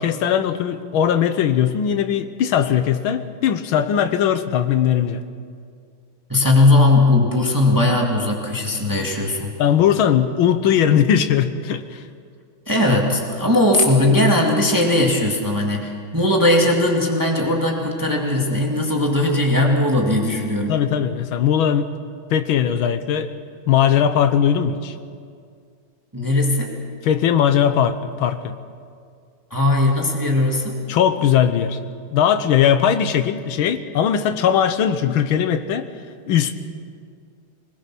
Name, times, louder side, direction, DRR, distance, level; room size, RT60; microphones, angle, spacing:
voice 1, 0.0-5.2 9.6-12.0 20.7-21.9 22.3-23.3 23.7-24.9 27.0-28.5 30.9-31.8 32.1-35.9 36.3-36.5, left 9 dB, 75° left, 10 dB, 1.7 m, -19 dB
voice 2, 6.3-9.5 12.7-20.7 26.1-26.7 29.5-30.8, left 1 dB, 10° right, 0 dB, 1.8 m, -18 dB
21.0 x 20.5 x 6.0 m, 2.2 s
omnidirectional pair, 2.3 m